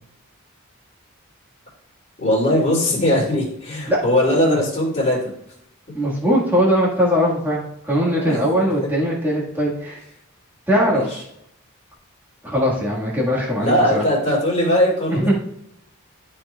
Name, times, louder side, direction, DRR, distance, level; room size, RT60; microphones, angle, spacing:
voice 1, 2.2-5.3 7.9-8.7 10.9-11.2 13.6-15.3, left 1 dB, 30° left, -11 dB, 2.8 m, -20 dB
voice 2, 5.9-10.0 10.7-11.2 12.4-14.0 15.1-15.3, equal, 10° right, -5 dB, 1.5 m, -20 dB
12.5 x 4.4 x 2.3 m, 0.76 s
head